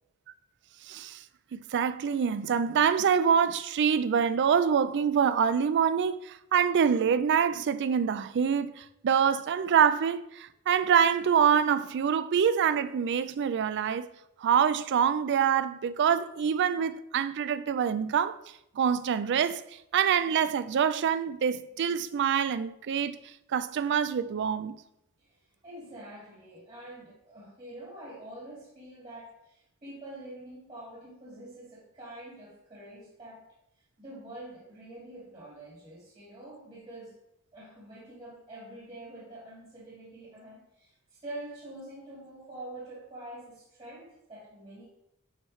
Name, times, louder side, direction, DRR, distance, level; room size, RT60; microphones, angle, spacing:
voice 1, 0.8-1.2 1.5-14.1 14.4-18.4 18.8-19.6 19.9-23.2 23.5-24.8, right 7 dB, 50° right, 0.3 m, -25 dB
voice 2, 25.2-33.5 34.0-37.2 37.5-44.8, right 1 dB, 25° right, 1.7 m, -46 dB
8.8 x 4.7 x 3.1 m
head